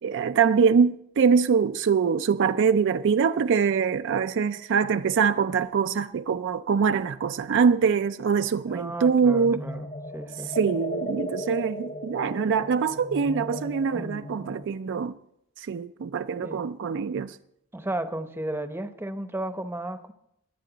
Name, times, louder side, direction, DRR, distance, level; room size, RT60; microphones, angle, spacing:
voice 1, 0.0-9.7 10.6-15.1 15.6-17.4, right 6 dB, 60° right, 0.4 m, -24 dB
voice 2, 8.7-10.5 13.9-14.3 16.4-16.7 17.7-20.1, right 1 dB, 10° right, 0.7 m, -34 dB
sound 1, 9.3-14.6, equal, 30° left, 0.8 m, -37 dB
22.0 x 8.5 x 3.9 m
head